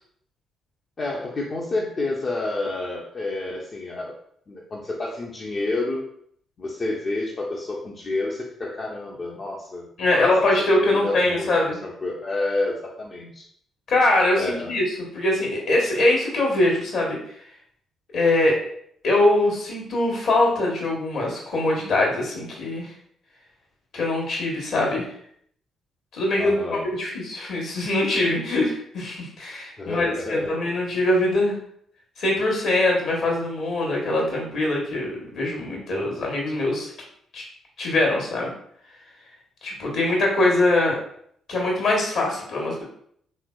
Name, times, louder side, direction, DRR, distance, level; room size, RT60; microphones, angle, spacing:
voice 1, 1.0-4.2 4.5-6.0 6.6-10.3 10.8-13.4 14.4-14.7 26.4-26.9 29.8-30.6, left 2 dB, 40° left, -3 dB, 0.6 m, -29 dB
voice 2, 10.0-11.8 13.9-17.2 18.1-18.6 19.0-22.9 23.9-25.1 26.1-26.6 26.9-31.6 32.2-36.9 37.3-37.4 37.8-38.5 39.6-41.0 41.5-42.8, left 2 dB, 60° left, -1 dB, 1.1 m, -22 dB
3.5 x 3.1 x 2.3 m, 0.66 s
hypercardioid pair, 45°, 0 cm